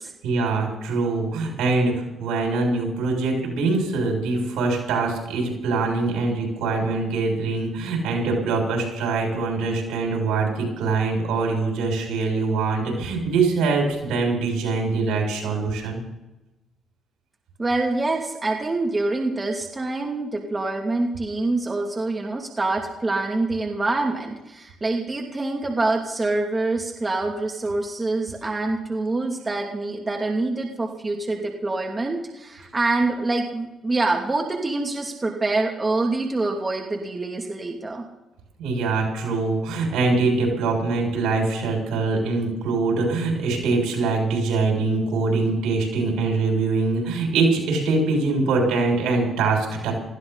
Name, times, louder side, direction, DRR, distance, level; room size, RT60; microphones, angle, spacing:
voice 1, 0.2-16.0 38.6-49.9, right 3 dB, 85° right, 1 dB, 7.1 m, -23 dB
voice 2, 17.6-38.0, right 2 dB, 25° right, 1 dB, 2.7 m, -25 dB
19.5 x 15.5 x 4.2 m, 0.97 s
cardioid pair, 90°, 0 cm